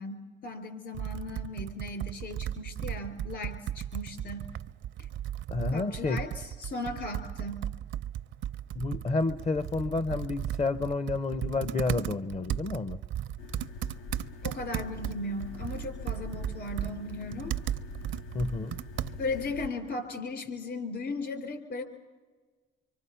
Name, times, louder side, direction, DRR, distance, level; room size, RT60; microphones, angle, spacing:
voice 1, 0.0-4.5 5.7-7.7 14.4-17.5 19.2-21.8, left 2 dB, 60° left, 9 dB, 3.5 m, -37 dB
Computer keyboard, 0.9-19.5, right 11 dB, 70° right, 0.6 m, -36 dB
voice 2, 5.5-6.2 8.7-13.0 18.3-18.8, left 3 dB, 30° left, 15 dB, 0.6 m, -30 dB
sound 1, 13.4-19.7, left 3 dB, 85° left, 1.0 m, -44 dB
25.5 x 24.5 x 5.6 m, 1.4 s
cardioid pair, 90°, 20 cm